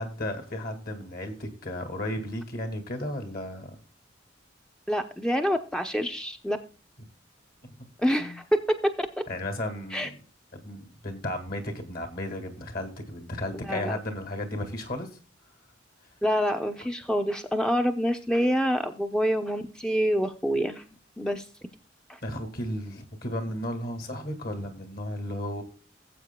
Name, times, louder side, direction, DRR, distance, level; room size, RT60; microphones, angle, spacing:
voice 1, 0.0-3.8 7.8-8.4 9.3-10.2 10.5-15.1 22.2-25.6, left 1 dB, 50° left, 7 dB, 2.1 m, -34 dB
voice 2, 4.9-6.6 8.0-9.1 9.9-10.1 13.6-14.0 16.2-20.8 21.2-21.5 22.1-22.2, equal, 5° left, 5 dB, 0.6 m, -26 dB
17.5 x 8.0 x 2.2 m, 0.36 s
head